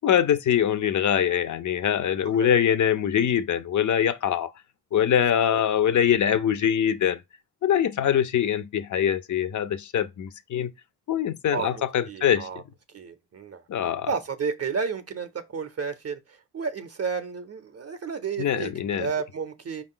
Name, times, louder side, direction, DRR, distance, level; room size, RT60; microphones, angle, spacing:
voice 1, 0.0-4.5 4.9-7.2 7.6-10.7 11.1-12.5 13.7-14.1 18.4-19.1, left 9 dB, 55° left, 0.5 m, -23 dB
voice 2, 11.5-12.6 12.9-13.6 14.1-19.8, right 5 dB, 40° right, 0.5 m, -32 dB
5.1 x 2.4 x 3.7 m
wide cardioid pair, 95°, 37 cm